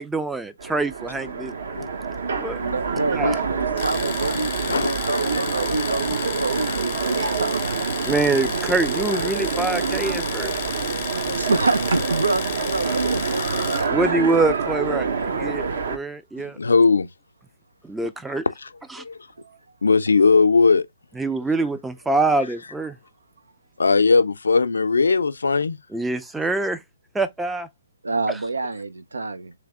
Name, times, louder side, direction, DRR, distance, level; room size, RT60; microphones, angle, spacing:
voice 1, 0.0-1.5 2.4-2.6 3.1-3.4 8.0-10.5 13.9-16.6 17.8-18.4 21.2-23.0 25.9-26.8 27.1-27.7, right 2 dB, 5° right, 0.4 m, -25 dB
Train, 0.6-16.0, right 5 dB, 60° right, 1.0 m, -26 dB
voice 2, 2.6-7.7 11.3-14.2 19.4-19.6 28.0-29.5, right 3 dB, 90° right, 0.7 m, -27 dB
Domestic sounds home sounds, 3.8-13.9, left 11 dB, 35° left, 0.6 m, -34 dB
voice 3, 4.3-6.1 6.7-6.9 8.0-8.1 13.2-13.3 13.5-13.7 16.4-17.1 18.3-18.7 19.0-19.2 19.8-20.9 23.8-25.8, left 4 dB, 80° left, 0.6 m, -20 dB
3.3 x 3.3 x 3.6 m
hypercardioid pair, 150°, 0 cm